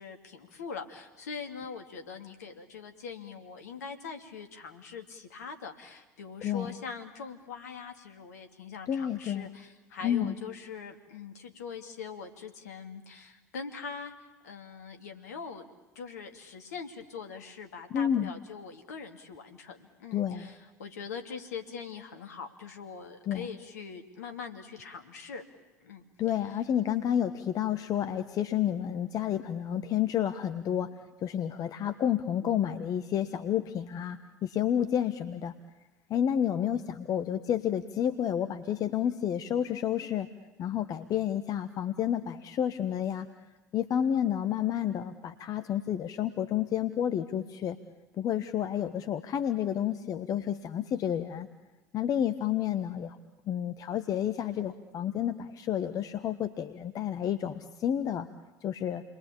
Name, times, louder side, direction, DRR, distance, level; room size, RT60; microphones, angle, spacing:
voice 1, 0.0-14.1 14.4-15.6 15.9-25.4 25.8-26.0, left 5 dB, 70° left, 6 dB, 2.7 m, -42 dB
voice 2, 6.4-6.7 8.9-9.5 10.0-10.3 17.9-18.3 20.1-20.5 23.3-23.5 26.2-30.9 31.2-35.5 36.1-40.3 40.6-43.3 43.7-47.8 48.2-51.5 51.9-53.2 53.5-58.3 58.6-59.0, left 10 dB, 40° left, 10 dB, 1.2 m, -30 dB
29.5 x 22.0 x 8.7 m, 1.1 s
figure-of-eight pair, 65°, 9 cm